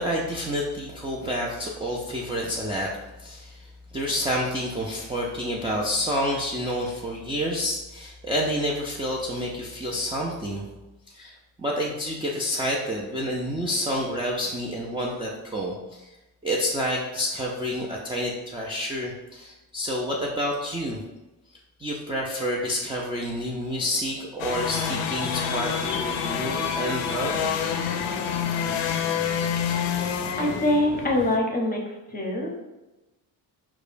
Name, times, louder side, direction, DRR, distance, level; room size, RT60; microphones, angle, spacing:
voice 1, 0.0-2.9 3.2-10.6 11.1-16.1 16.4-21.0 21.8-27.5, equal, 10° right, -4 dB, 0.4 m, -29 dB
sound 1, 24.4-31.4, left 7 dB, 70° left, 0.5 m, -27 dB
voice 2, 30.4-32.5, left 1 dB, 20° left, 0 dB, 0.7 m, -24 dB
4.7 x 2.2 x 2.6 m, 1.0 s
supercardioid pair, 75°, 46 cm